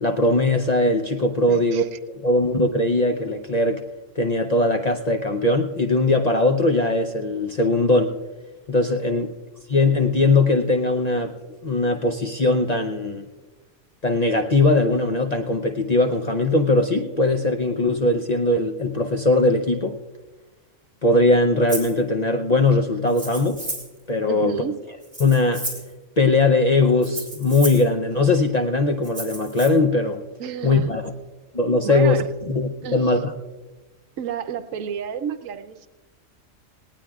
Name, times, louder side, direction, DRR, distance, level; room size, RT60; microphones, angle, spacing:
voice 1, 0.0-1.8 2.1-3.8 4.2-8.1 8.7-9.3 9.7-11.3 11.6-13.2 14.0-20.0 21.0-23.7 24.1-24.6 25.2-25.6 26.2-30.2 30.6-31.0 31.5-33.3, left 2 dB, 45° left, 3 dB, 0.6 m, -20 dB
voice 2, 1.4-2.0 9.1-9.3 24.2-24.8 30.4-30.9 31.8-32.2 32.8-33.2 34.2-35.9, right 8 dB, 75° right, 10 dB, 1.1 m, -31 dB
Rattle (instrument), 21.7-22.0 23.1-24.0 25.0-25.9 27.0-27.9 29.0-29.7, right 1 dB, 25° right, 3.3 m, -33 dB
18.5 x 18.5 x 2.3 m, 1.2 s
omnidirectional pair, 1.4 m